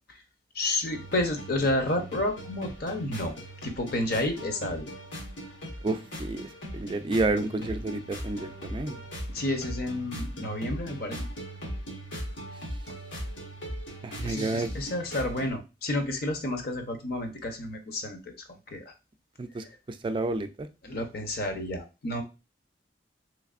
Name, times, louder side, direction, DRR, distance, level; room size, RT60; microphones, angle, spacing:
voice 1, 0.5-3.3 3.6-4.9 9.3-11.2 14.2-18.2 18.7-18.9 20.8-22.2, left 1 dB, 55° left, 5 dB, 0.7 m, -30 dB
sound 1, 0.9-15.5, equal, 90° left, 1.3 m, -39 dB
voice 2, 5.8-6.5 6.7-9.0 14.0-14.7 19.4-19.6 20.0-20.7, right 2 dB, 30° right, 9 dB, 0.3 m, -30 dB
3.4 x 3.2 x 2.4 m, 0.28 s
head